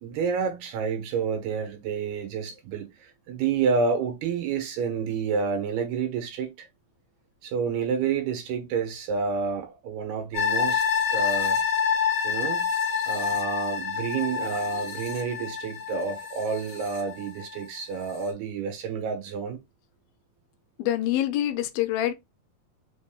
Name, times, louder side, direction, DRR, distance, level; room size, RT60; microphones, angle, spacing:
voice 1, 0.0-6.7 7.4-10.8 11.1-11.6 12.2-12.7 13.1-19.6, right 5 dB, 90° right, 3.3 m, -29 dB
sound 1, 10.3-17.6 18.0-18.1, left 7 dB, 40° left, 1.4 m, -27 dB
voice 2, 20.8-22.1, left 13 dB, 80° left, 2.3 m, -25 dB
6.5 x 3.4 x 2.3 m
omnidirectional pair, 4.4 m